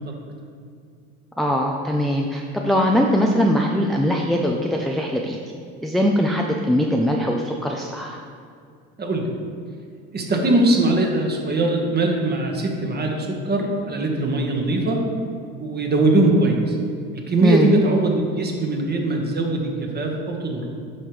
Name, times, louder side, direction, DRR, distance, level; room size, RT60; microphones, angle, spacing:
voice 1, 1.4-5.4 5.8-8.2 17.4-17.7, equal, ahead, 0 dB, 0.5 m, -21 dB
voice 2, 9.0-9.3 10.1-15.0 15.6-16.8 17.1-20.6, right 2 dB, 30° right, 1 dB, 1.4 m, -21 dB
8.8 x 5.6 x 3.3 m, 2.3 s
supercardioid pair, 80°, 32 cm